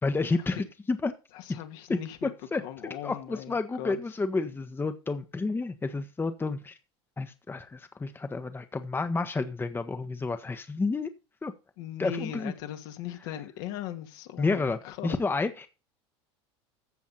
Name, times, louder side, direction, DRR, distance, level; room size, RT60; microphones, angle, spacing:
voice 1, 0.0-1.1 1.9-6.8 7.2-11.1 11.4-11.5 12.0-12.5 14.4-15.7, left 3 dB, 15° left, 1.3 m, -30 dB
voice 2, 1.3-2.3 2.6-4.0 11.8-15.2, left 11 dB, 65° left, 2.1 m, -39 dB
14.0 x 7.2 x 4.1 m
hypercardioid pair, 90°, 14 cm